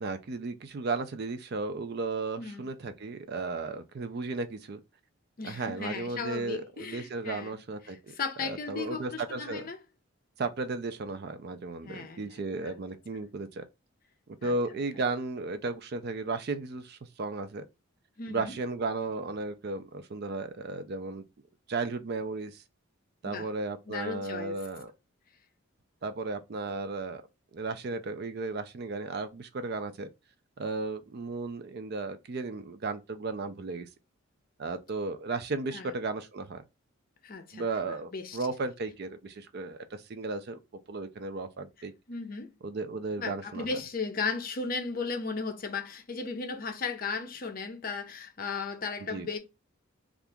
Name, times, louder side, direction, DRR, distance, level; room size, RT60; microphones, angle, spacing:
voice 1, 0.0-4.8 5.4-9.7 10.4-13.6 14.3-17.6 18.3-21.2 21.7-22.6 23.2-24.9 26.0-27.2 27.5-30.1 30.6-33.9 34.6-36.6 37.5-40.6 40.9-41.9 42.6-43.7 49.1-49.3, right 3 dB, 50° right, 0.4 m, -35 dB
voice 2, 5.4-7.6 7.8-9.8 11.8-12.8 14.4-14.5 18.2-18.5 23.2-23.5 23.9-24.6 35.7-35.9 37.2-38.4 42.1-42.5 43.2-49.4, left 4 dB, 40° left, 0.6 m, -36 dB
2.8 x 2.5 x 3.4 m
head